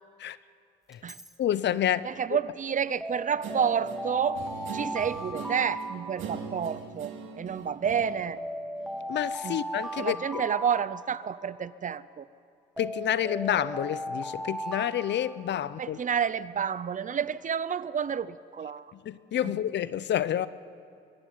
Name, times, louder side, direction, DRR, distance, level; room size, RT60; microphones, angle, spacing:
Alarm, 0.9-1.3 3.0-6.8 7.9-11.6 12.8-16.0, equal, ahead, 1.3 m, -37 dB
voice 1, 1.4-2.1 9.1-10.4 12.8-16.0 18.9-20.5, left 11 dB, 65° left, 16 dB, 0.7 m, -29 dB
voice 2, 2.0-4.4 4.7-8.4 9.4-9.6 10.0-12.3 15.8-18.9 19.4-19.5, right 7 dB, 40° right, 17 dB, 0.6 m, -30 dB
Guitar, 3.4-9.2, right 6 dB, 90° right, 2.3 m, -42 dB
23.5 x 15.5 x 9.5 m, 2.5 s
cardioid pair, 90°, 20 cm